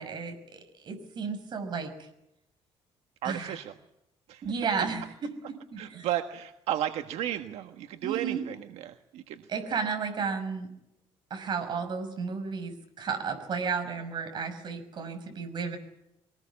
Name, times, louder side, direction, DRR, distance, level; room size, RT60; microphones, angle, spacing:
voice 1, 0.0-1.9 3.2-3.5 4.4-5.0 5.7-6.1 8.0-8.4 9.5-10.7 11.3-15.8, right 5 dB, 45° right, 7 dB, 6.0 m, -33 dB
voice 2, 3.2-3.8 4.3-4.4 4.8-4.9 5.8-9.5, right 11 dB, 80° right, 7 dB, 1.5 m, -34 dB
24.0 x 19.5 x 8.6 m, 0.85 s
cardioid pair, 140°, 11 cm